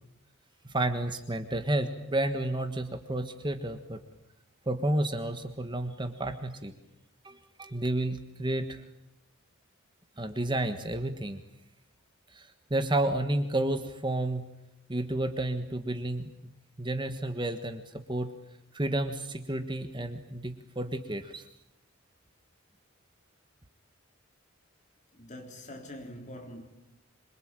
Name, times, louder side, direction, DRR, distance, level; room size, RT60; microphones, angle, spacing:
voice 1, 0.6-4.0 4.7-6.7 7.2-8.8 10.2-11.4 12.3-14.5 14.9-16.3 16.8-17.8 18.1-18.3 18.7-21.4, right 1 dB, 20° right, 1.4 m, -31 dB
voice 2, 25.1-26.7, left 1 dB, 35° left, 3.9 m, -44 dB
27.0 x 24.0 x 9.0 m
head